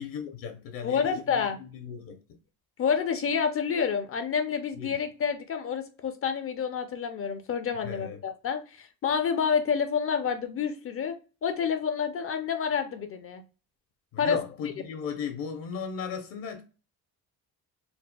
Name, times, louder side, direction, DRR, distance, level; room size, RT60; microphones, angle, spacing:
voice 1, 0.0-2.2 4.8-5.0 7.8-8.2 14.1-16.6, left 7 dB, 65° left, 0.7 m, -36 dB
voice 2, 0.8-1.6 2.8-11.2 11.4-13.4 14.2-14.4, left 6 dB, 40° left, 0.4 m, -28 dB
4.2 x 2.3 x 2.2 m
cardioid pair, 130°, 38 cm